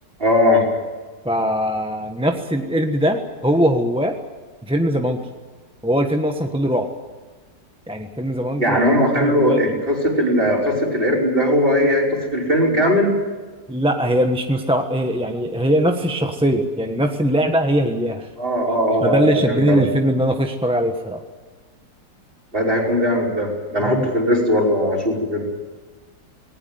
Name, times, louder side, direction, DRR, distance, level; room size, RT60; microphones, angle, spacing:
voice 1, 0.2-0.7 8.6-13.1 18.4-19.8 22.5-25.4, equal, 30° right, 0 dB, 5.5 m, -19 dB
voice 2, 1.2-4.2 4.6-5.2 5.8-6.9 7.9-8.9 9.1-9.8 13.7-18.3 19.0-21.2 23.8-24.1, equal, 5° right, 4 dB, 1.1 m, -21 dB
19.5 x 18.5 x 9.5 m, 1.3 s
omnidirectional pair, 1.9 m